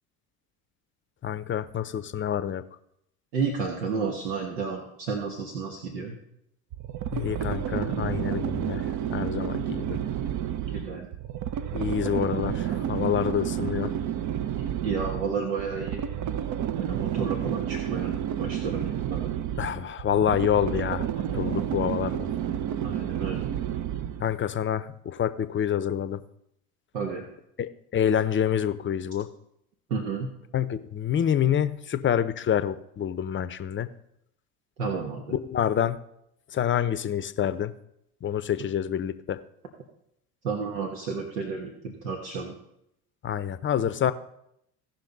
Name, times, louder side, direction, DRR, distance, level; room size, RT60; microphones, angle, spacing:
voice 1, 1.2-2.6 7.1-10.0 11.7-13.9 19.6-21.1 21.3-22.3 24.2-26.2 27.6-29.3 30.5-33.9 35.3-36.0 36.5-37.7 38.2-39.4 43.2-44.1, left 9 dB, 25° left, 13 dB, 0.7 m, -27 dB
voice 2, 3.3-6.2 10.7-11.1 14.8-16.1 16.7-19.3 22.8-23.4 26.9-27.2 29.9-30.3 34.8-35.3 40.4-42.5, right 5 dB, 80° right, 1 dB, 1.5 m, -31 dB
sound 1, 6.7-24.3, right 10 dB, 40° right, 0.7 m, -30 dB
16.5 x 5.8 x 4.0 m, 0.78 s
hypercardioid pair, 70°, 45 cm